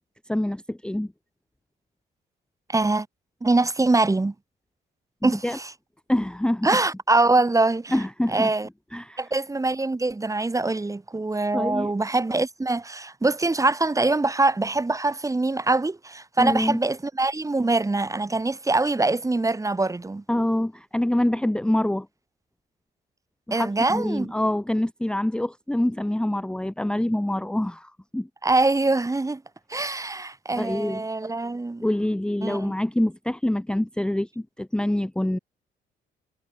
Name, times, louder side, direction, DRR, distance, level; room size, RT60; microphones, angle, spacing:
voice 1, 0.3-1.1 5.2-5.6 6.1-6.7 7.9-8.5 8.9-9.2 11.5-11.9 16.4-16.8 20.3-22.1 23.5-28.3 30.6-31.0 31.8-35.4, left 1 dB, 5° left, 0.8 m, -25 dB
voice 2, 2.7-3.1 3.4-4.3 5.2-5.7 6.6-8.0 8.3-8.7 9.2-20.2 23.5-24.3 28.4-29.4 29.7-31.8 32.4-32.7, right 2 dB, 15° right, 1.4 m, -23 dB
cardioid pair, 90°, 20 cm